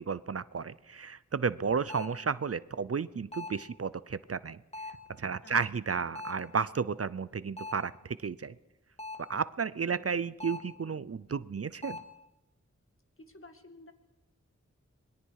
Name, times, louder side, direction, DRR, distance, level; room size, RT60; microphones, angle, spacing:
voice 1, 0.0-4.9 5.2-8.5 9.3-12.0, right 5 dB, 55° right, 17 dB, 0.6 m, -33 dB
sound 1, 1.9-2.3 3.3-3.7 4.7-5.1 6.1-6.5 7.6-7.9 9.0-9.4 10.4-10.8 11.8-12.2, left 3 dB, 20° left, 2.3 m, -42 dB
voice 2, 9.8-10.2 13.2-13.9, left 2 dB, 45° left, 7 dB, 2.1 m, -53 dB
25.5 x 21.5 x 4.8 m, 0.93 s
wide cardioid pair, 60°, 29 cm